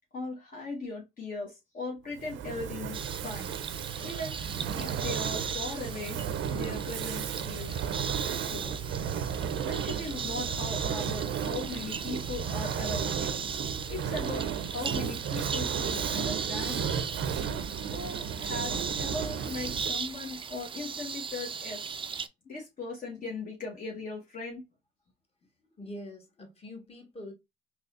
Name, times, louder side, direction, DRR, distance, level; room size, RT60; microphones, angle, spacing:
voice 1, 0.1-3.5 4.0-4.4 4.7-6.2 6.5-7.8 8.5-8.9 9.6-13.4 13.9-17.2 17.9-22.0 22.4-24.6, left 3 dB, 45° left, 1.1 m, -39 dB
Fire, 2.1-20.1, right 8 dB, 75° right, 0.5 m, -34 dB
sound 1, 2.9-22.3, right 6 dB, 25° right, 0.4 m, -37 dB
voice 2, 17.1-18.1 25.6-27.3, left 1 dB, 30° left, 1.4 m, -46 dB
4.0 x 2.9 x 2.4 m
cardioid pair, 90°, 20 cm